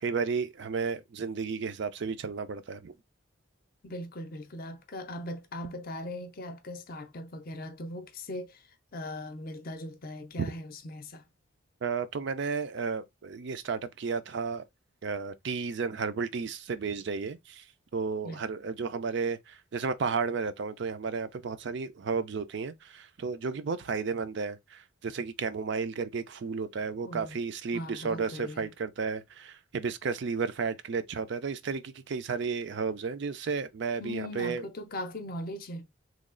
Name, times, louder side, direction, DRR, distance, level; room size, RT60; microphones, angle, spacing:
voice 1, 0.0-2.9 11.8-14.6 15.0-17.6 17.9-34.6, right 5 dB, 55° right, 0.4 m, -33 dB
voice 2, 3.8-8.6 8.9-11.2 18.2-18.4 27.0-27.4 27.7-28.7 34.0-35.9, left 1 dB, 45° left, 0.6 m, -39 dB
3.1 x 2.3 x 3.7 m
head